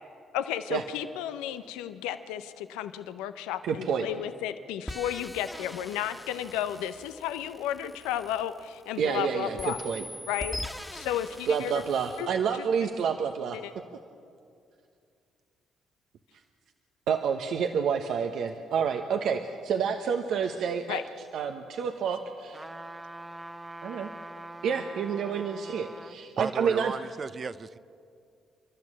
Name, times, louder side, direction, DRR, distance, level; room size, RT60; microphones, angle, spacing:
voice 1, 0.3-9.8 10.3-10.6 10.9-11.8 12.2-12.3 13.5-13.7 20.9-21.0, left 11 dB, 85° left, 11 dB, 0.7 m, -33 dB
voice 2, 3.6-4.1 9.0-10.0 11.5-13.6 17.1-21.0 21.3-22.6 23.8-24.1 24.6-26.9, right 6 dB, 70° right, 5 dB, 1.0 m, -29 dB
sound 1, 4.9-9.2 9.6-12.3, left 1 dB, 10° left, 1.7 m, -42 dB
sound 2, 22.5-26.2 26.7-26.8, right 1 dB, 15° right, 1.0 m, -43 dB
voice 3, 26.4-27.8, right 5 dB, 45° right, 15 dB, 0.7 m, -35 dB
29.5 x 12.0 x 7.5 m, 2.4 s
supercardioid pair, 55°, 0 cm